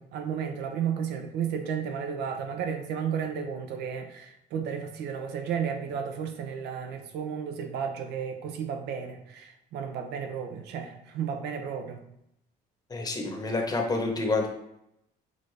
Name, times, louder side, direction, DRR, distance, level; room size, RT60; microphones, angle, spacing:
voice 1, 0.0-12.0, right 7 dB, 80° right, 5 dB, 0.7 m, -33 dB
voice 2, 12.9-14.5, left 3 dB, 20° left, 1 dB, 0.9 m, -28 dB
6.3 x 2.5 x 3.3 m, 0.79 s
cardioid pair, 110°, 17 cm